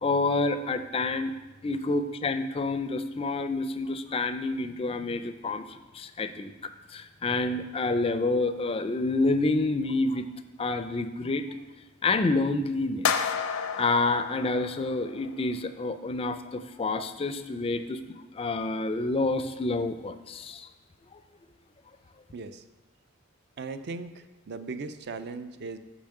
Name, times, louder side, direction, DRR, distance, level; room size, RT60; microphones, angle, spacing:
voice 1, 0.0-1.3 1.6-10.3 10.6-11.4 12.0-13.1 13.8-20.7 21.1-21.2, left 3 dB, 25° left, 10 dB, 0.4 m, -28 dB
sound 1, 13.0-15.3, left 7 dB, 85° left, 0.5 m, -31 dB
voice 2, 22.3-22.6 23.6-25.8, right 4 dB, 50° right, 11 dB, 0.5 m, -38 dB
7.1 x 5.0 x 6.6 m, 1.1 s
head